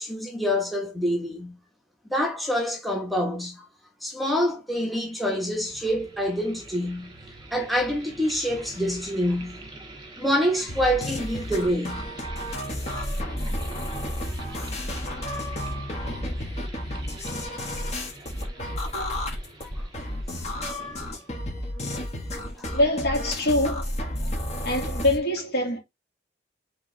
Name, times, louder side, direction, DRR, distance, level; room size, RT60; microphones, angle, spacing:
voice 1, 0.0-1.6 2.1-3.7 4.0-7.1 7.5-9.6 10.2-12.0 13.4-13.5 14.3-14.6 16.0-16.1 17.2-17.7, equal, ahead, 1.0 m, -26 dB
sound 1, 4.9-21.6, right 2 dB, 25° right, 1.5 m, -45 dB
sound 2, 10.7-25.2, left 1 dB, 40° left, 1.6 m, -31 dB
voice 2, 22.6-24.0 24.6-25.8, left 1 dB, 60° left, 2.1 m, -24 dB
4.7 x 3.4 x 3.3 m
head